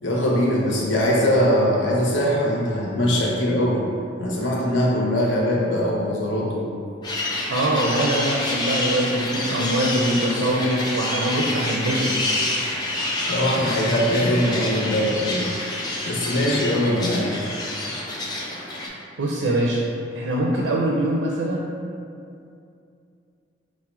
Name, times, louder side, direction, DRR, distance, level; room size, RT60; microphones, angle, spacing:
voice 1, 0.0-3.9 4.2-6.7 13.2-15.5 16.0-17.3, equal, 75° left, -3 dB, 0.8 m, -21 dB
sound 1, 7.0-18.9, left 1 dB, 20° left, 0.4 m, -28 dB
voice 2, 7.5-12.1 19.2-19.9 20.1-21.7, right 1 dB, 70° right, -3 dB, 0.4 m, -23 dB
4.7 x 2.1 x 4.3 m, 2.5 s
head